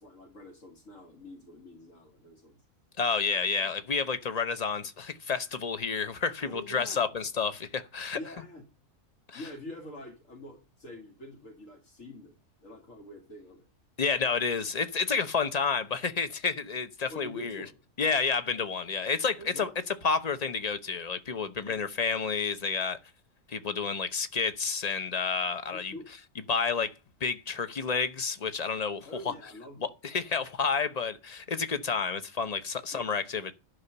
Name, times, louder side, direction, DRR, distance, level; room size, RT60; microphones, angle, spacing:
voice 1, 0.0-2.6 3.2-3.7 6.4-7.0 8.2-8.7 9.3-12.3 12.6-13.7 17.1-17.8 19.4-19.7 21.6-21.8 25.7-26.1 29.1-29.9 32.9-33.0, left 1 dB, 70° left, 2.4 m, -46 dB
voice 2, 3.0-8.2 9.3-9.4 14.0-17.6 18.0-23.0 23.5-25.9 26.5-26.9 27.2-29.0 30.0-33.5, left 5 dB, 35° left, 0.8 m, -30 dB
11.5 x 5.7 x 6.8 m
omnidirectional pair, 1.4 m